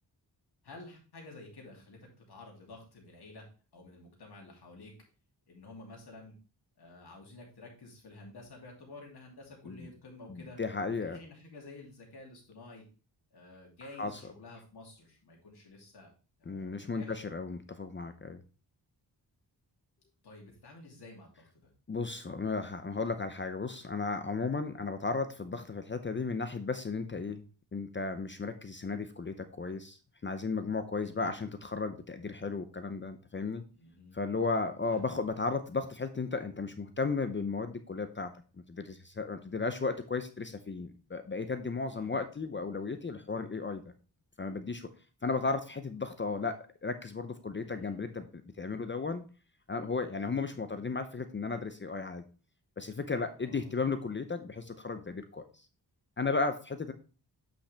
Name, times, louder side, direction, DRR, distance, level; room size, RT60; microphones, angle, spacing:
voice 1, 0.6-3.5 3.7-4.9 5.5-6.3 6.8-10.6 11.0-12.8 13.3-16.1 16.4-17.2 20.2-21.7 31.0-31.4 33.7-34.2 34.9-35.1 41.9-42.2 47.6-48.0 53.4-53.7, left 2 dB, 65° left, -1 dB, 2.8 m, -51 dB
voice 2, 10.3-11.2 14.0-14.1 16.5-18.4 21.9-27.4 27.7-33.6 34.1-38.3 38.7-43.8 44.4-44.9 45.2-49.2 49.7-52.2 52.8-55.4 56.2-56.9, left 4 dB, 30° left, 8 dB, 0.6 m, -34 dB
8.5 x 5.3 x 3.4 m, 0.36 s
wide cardioid pair, 150°, 41 cm